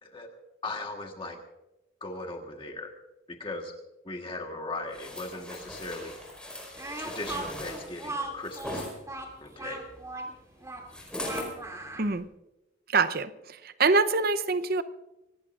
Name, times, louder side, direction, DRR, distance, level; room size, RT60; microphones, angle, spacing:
voice 1, 0.6-1.4 2.0-2.9 3.3-3.7 4.0-6.1 7.0-8.9 9.4-9.8, left 2 dB, 25° left, 2 dB, 1.5 m, -38 dB
sound 1, 4.9-8.9 10.9-11.5 12.1-12.2, left 1 dB, 5° left, 4.7 m, -39 dB
Speech, 6.8-12.1, right 2 dB, 15° right, 2.7 m, -38 dB
voice 2, 12.9-14.8, right 4 dB, 50° right, 13 dB, 0.8 m, -25 dB
24.5 x 19.0 x 2.6 m, 0.97 s
head